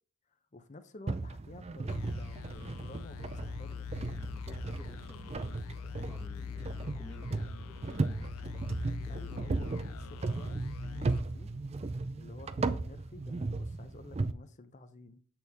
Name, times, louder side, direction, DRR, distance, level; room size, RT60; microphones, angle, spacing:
voice 1, 0.5-3.9 5.3-5.6 6.2-6.6 9.1-11.5 12.2-15.2, left 2 dB, 30° left, 0.6 m, -52 dB
sound 1, 1.1-14.3, right 3 dB, 30° right, 0.4 m, -36 dB
sound 2, 1.9-12.2, left 7 dB, 70° left, 0.3 m, -44 dB
voice 2, 4.1-8.4, left 1 dB, 10° left, 1.0 m, -54 dB
8.1 x 4.5 x 3.5 m
head